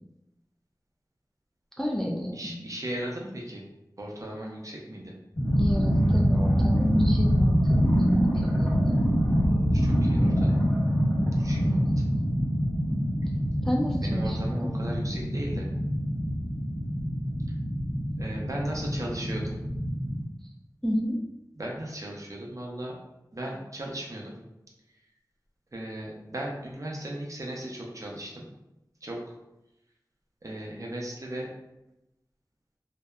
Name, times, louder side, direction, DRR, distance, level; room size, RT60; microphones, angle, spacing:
voice 1, 1.8-2.6 5.6-8.9 11.7-12.0 13.6-14.5 20.8-21.2, equal, 5° left, -1 dB, 0.3 m, -29 dB
voice 2, 2.3-3.6 4.0-5.2 9.3-10.8 11.3-12.0 14.0-15.7 18.2-19.5 21.6-23.0 23.3-24.4 25.7-28.5 29.0-29.4 30.4-31.5, right 1 dB, 50° right, -2 dB, 0.6 m, -37 dB
sound 1, 5.4-20.2, equal, 60° left, 1.2 m, -25 dB
2.7 x 2.0 x 2.2 m, 0.91 s
wide cardioid pair, 50°, 7 cm